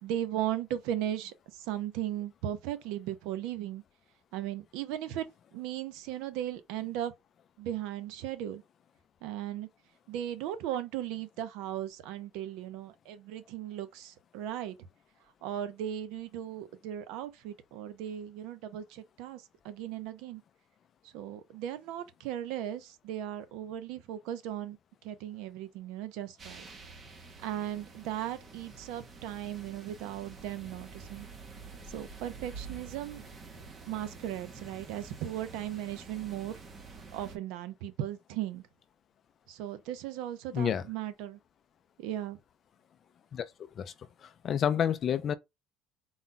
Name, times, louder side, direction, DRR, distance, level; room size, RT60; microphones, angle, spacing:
voice 1, 0.0-3.8 4.3-5.3 5.5-7.1 7.6-8.6 9.2-9.7 10.1-14.9 15.4-20.4 21.1-24.8 25.0-26.7 27.4-31.3 31.9-33.2 33.9-36.6 37.1-38.6 39.5-41.4 42.0-42.4, right 11 dB, 70° right, 0.7 m, -37 dB
sound 1, 26.4-37.4, right 4 dB, 25° right, 0.7 m, -48 dB
voice 2, 40.5-40.8 43.3-43.4 43.8-43.9 44.2-45.3, left 8 dB, 30° left, 0.4 m, -29 dB
4.0 x 2.3 x 3.9 m
cardioid pair, 170°, 0 cm